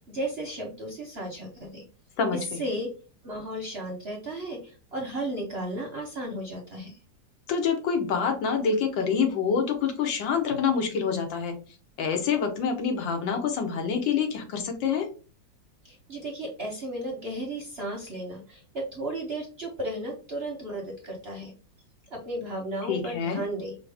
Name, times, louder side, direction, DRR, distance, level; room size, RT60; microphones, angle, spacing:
voice 1, 0.1-1.8 2.3-2.9 3.2-7.0 15.8-21.5 22.1-23.8, right 1 dB, 50° right, 0 dB, 0.7 m, -34 dB
voice 2, 7.5-11.5 12.0-15.1 22.9-23.4, left 6 dB, 85° left, 5 dB, 1.6 m, -26 dB
5.2 x 2.1 x 3.3 m, 0.35 s
omnidirectional pair, 2.0 m